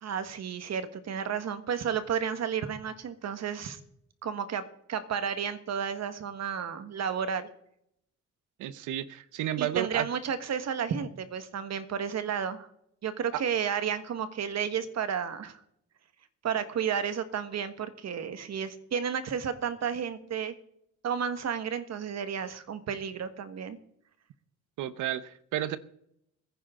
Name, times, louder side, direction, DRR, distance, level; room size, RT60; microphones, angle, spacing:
voice 1, 0.0-3.8 4.2-7.5 9.6-12.7 13.0-15.6 16.4-20.5 21.0-23.8, right 7 dB, 60° right, 1.6 m, -32 dB
voice 2, 8.6-10.1 13.3-13.4 24.8-25.8, right 12 dB, 90° right, 0.9 m, -32 dB
21.0 x 10.5 x 3.8 m
cardioid pair, 90°, 30 cm